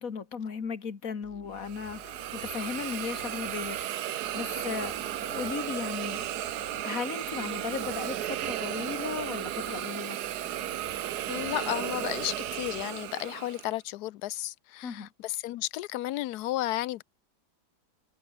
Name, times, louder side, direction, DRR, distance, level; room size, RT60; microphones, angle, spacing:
voice 1, 0.0-10.2 14.8-15.1, left 6 dB, 50° left, 2.3 m, -36 dB
sound 1, 1.2-13.4, left 3 dB, 35° left, 3.1 m, -53 dB
Hiss, 1.6-13.7, right 12 dB, 70° right, 1.3 m, -34 dB
voice 2, 11.3-17.0, left 15 dB, 75° left, 1.1 m, -33 dB
omnidirectional pair, 1.9 m